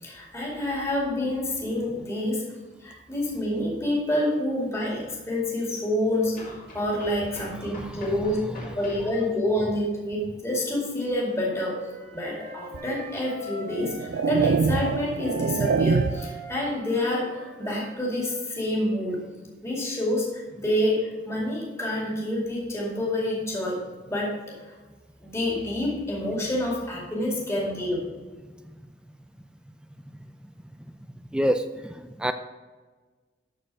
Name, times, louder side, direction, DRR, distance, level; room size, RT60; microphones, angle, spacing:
voice 1, 0.0-2.4 2.8-8.4 8.7-19.3 19.6-24.7 25.2-28.1, left 1 dB, 15° left, -4 dB, 2.3 m, -28 dB
sound 1, 3.9-4.0 6.3-9.2, left 1 dB, 50° left, 2.7 m, -44 dB
Wind instrument woodwind instrument, 11.3-14.8 15.2-18.9, right 1 dB, 65° right, 2.0 m, -42 dB
sound 2, 12.7-12.9 13.6-16.4, right 5 dB, 85° right, 0.4 m, -25 dB
voice 2, 31.3-32.3, equal, 5° right, 9 dB, 0.3 m, -27 dB
13.0 x 4.4 x 4.8 m, 1.3 s
head